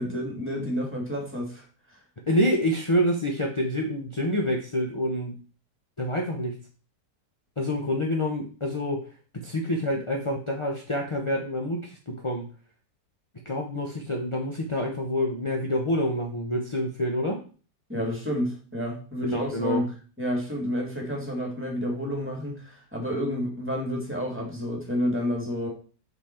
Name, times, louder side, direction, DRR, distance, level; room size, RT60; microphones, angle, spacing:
voice 1, 0.0-1.6 17.9-19.9 20.2-25.7, equal, 5° right, 0 dB, 1.9 m, -30 dB
voice 2, 2.3-5.3 6.0-6.5 7.6-9.1 9.3-12.4 13.4-17.4 19.2-19.8, left 1 dB, 30° left, 0 dB, 0.6 m, -27 dB
6.0 x 5.5 x 4.3 m, 0.39 s
omnidirectional pair, 1.9 m